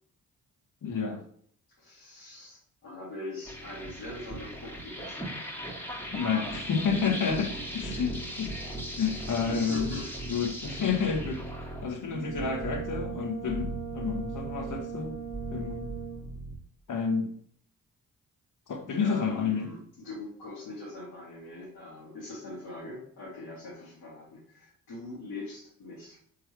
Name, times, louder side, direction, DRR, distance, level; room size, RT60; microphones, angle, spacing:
voice 1, 0.8-1.2 6.1-8.5 9.0-10.0 10.3-11.4 11.8-15.2 15.5-15.9 16.9-17.3 18.7-19.7, left 6 dB, 55° left, 5 dB, 1.0 m, -30 dB
voice 2, 1.8-5.3 7.2-7.5 9.5-10.1 10.9-11.1 19.0-26.2, left 2 dB, 85° left, -9 dB, 1.8 m, -42 dB
sound 1, 3.4-16.6, right 1 dB, 5° left, 1.2 m, -38 dB
Brass instrument, 12.0-16.4, right 8 dB, 80° right, 1.0 m, -39 dB
4.4 x 3.8 x 3.2 m, 0.62 s
cardioid pair, 60°, 36 cm